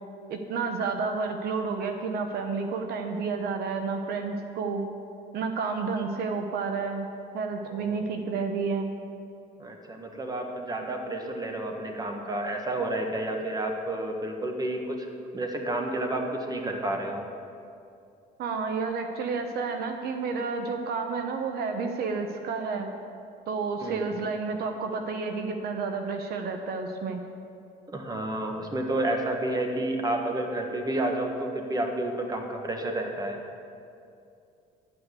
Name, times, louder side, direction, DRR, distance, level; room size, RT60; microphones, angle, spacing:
voice 1, 0.3-4.8 5.3-7.1 7.3-8.9 18.4-22.9 23.5-27.2, right 4 dB, 70° right, 5 dB, 0.9 m, -30 dB
voice 2, 7.7-8.0 9.6-17.3 23.8-24.2 27.9-33.4, right 1 dB, 20° right, 3 dB, 1.4 m, -30 dB
11.0 x 6.0 x 8.2 m, 2.5 s
cardioid pair, 110°, 17 cm